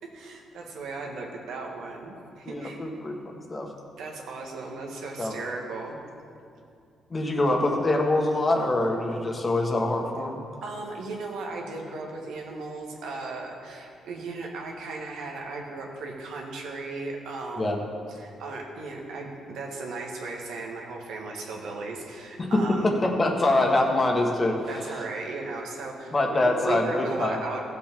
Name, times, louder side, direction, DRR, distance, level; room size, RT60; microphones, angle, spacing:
voice 1, 0.0-2.8 4.0-6.0 10.6-17.8 18.1-23.0 24.6-27.8, right 3 dB, 80° right, 0 dB, 1.6 m, -36 dB
voice 2, 2.4-3.2 3.5-3.7 5.2-5.4 7.1-10.4 17.6-17.8 22.4-24.6 26.1-27.4, left 2 dB, 30° left, 1 dB, 1.6 m, -24 dB
15.0 x 7.5 x 3.8 m, 2.4 s
cardioid pair, 90°, 0 cm